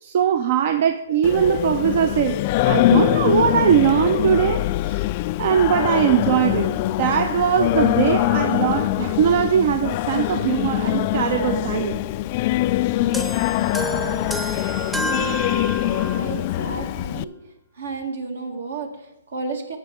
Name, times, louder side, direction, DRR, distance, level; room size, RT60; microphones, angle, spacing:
voice 1, 0.0-2.4 2.6-5.0 5.4-12.0, right 9 dB, 50° right, 9 dB, 0.6 m, -20 dB
Singing, 1.2-17.2, left 15 dB, 40° left, 0.3 m, -23 dB
sound 1, 13.1-16.3, right 1 dB, 5° right, 0.7 m, -29 dB
voice 2, 15.8-17.3 17.8-19.8, right 3 dB, 70° right, 4 dB, 1.9 m, -32 dB
15.5 x 6.0 x 3.8 m, 0.82 s
hypercardioid pair, 135°, 0 cm